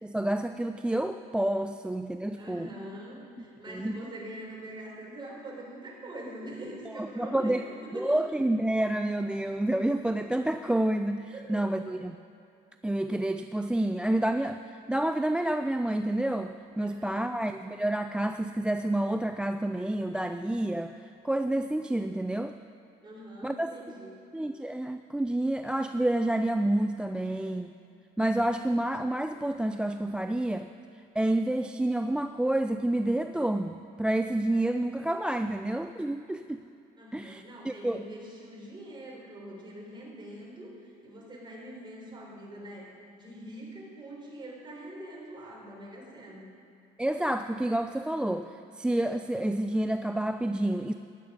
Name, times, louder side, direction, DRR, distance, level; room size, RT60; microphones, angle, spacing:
voice 1, 0.0-2.7 3.7-4.0 6.9-7.7 7.9-12.2 12.8-22.6 23.4-23.7 24.3-27.7 28.2-30.7 31.2-36.6 37.1-38.1 47.0-50.9, right 1 dB, 5° right, 8 dB, 0.3 m, -29 dB
voice 2, 2.3-8.4 11.3-11.9 16.8-17.3 23.0-24.1 37.0-42.9 43.1-46.4, right 1 dB, 25° right, -3 dB, 4.1 m, -43 dB
15.5 x 11.0 x 5.1 m, 2.6 s
cardioid pair, 110°, 17 cm